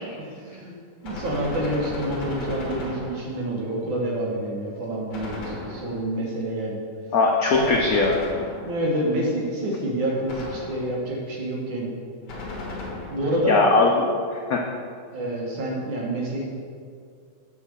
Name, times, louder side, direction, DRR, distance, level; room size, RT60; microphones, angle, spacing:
voice 1, 0.3-0.8 1.0-6.8 7.5-7.7 8.5-11.9 13.1-13.6 15.1-16.5, right 1 dB, 65° right, -2 dB, 2.2 m, -27 dB
Gunshot gunfire, 1.0-3.5 5.1-6.2 7.5-9.0 10.3-11.1 12.3-13.4, left 2 dB, 55° left, 1.9 m, -35 dB
voice 2, 7.1-8.3 13.5-14.0 14.3-14.6, left 3 dB, 80° left, 0 dB, 0.8 m, -20 dB
7.2 x 4.4 x 6.8 m, 2.2 s
omnidirectional pair, 2.4 m